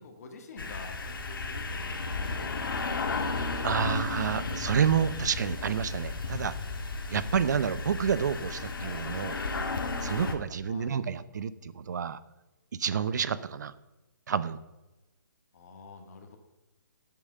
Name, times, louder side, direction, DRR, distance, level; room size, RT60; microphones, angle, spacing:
voice 1, 0.0-1.9 2.2-4.0 10.7-10.9 15.5-16.4, left 4 dB, 45° left, 3 dB, 1.8 m, -48 dB
sound 1, 0.6-10.3, left 3 dB, 80° left, 1.9 m, -34 dB
voice 2, 3.6-6.6 7.1-9.4 10.0-12.2 12.8-13.7 14.3-14.6, right 7 dB, 55° right, 16 dB, 0.7 m, -29 dB
9.6 x 8.3 x 6.6 m, 1.0 s
hypercardioid pair, 165°, 11 cm